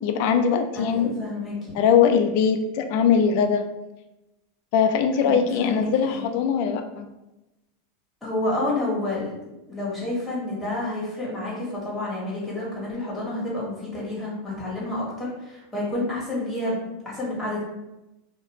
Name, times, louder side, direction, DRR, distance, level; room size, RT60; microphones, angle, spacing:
voice 1, 0.0-1.1 1.7-3.6 4.7-7.1, left 7 dB, 60° left, 6 dB, 0.3 m, -21 dB
voice 2, 0.9-1.8 5.2-5.8 6.1-6.3 8.2-9.3 9.7-17.6, left 2 dB, 5° left, -6 dB, 1.3 m, -29 dB
2.4 x 2.1 x 3.0 m, 0.97 s
supercardioid pair, 120°, 0 cm